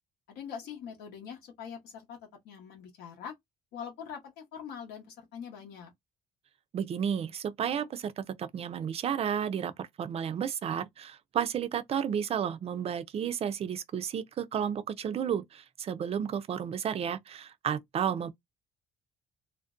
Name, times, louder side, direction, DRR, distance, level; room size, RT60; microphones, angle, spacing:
voice 1, 0.3-3.3 3.7-5.9, left 7 dB, 80° left, 0.8 m, -43 dB
voice 2, 6.7-18.3, right 8 dB, 35° right, 0.4 m, -32 dB
2.5 x 2.1 x 2.4 m
cardioid pair, 110°, 17 cm